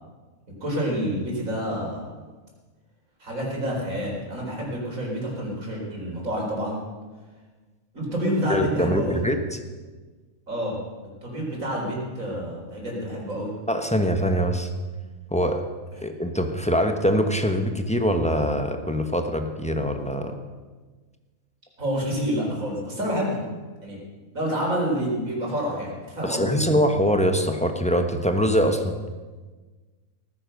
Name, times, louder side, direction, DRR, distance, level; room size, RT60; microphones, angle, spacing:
voice 1, 0.6-2.0 3.2-6.8 7.9-9.1 10.5-10.8 11.2-13.5 21.8-23.4 23.8-24.0 24.3-26.6, equal, 70° right, -2 dB, 4.7 m, -28 dB
voice 2, 8.5-9.6 13.7-14.7 15.3-15.6 16.0-20.3 26.2-28.9, equal, 5° left, 5 dB, 1.1 m, -23 dB
18.0 x 10.0 x 6.5 m, 1.3 s
omnidirectional pair, 1.5 m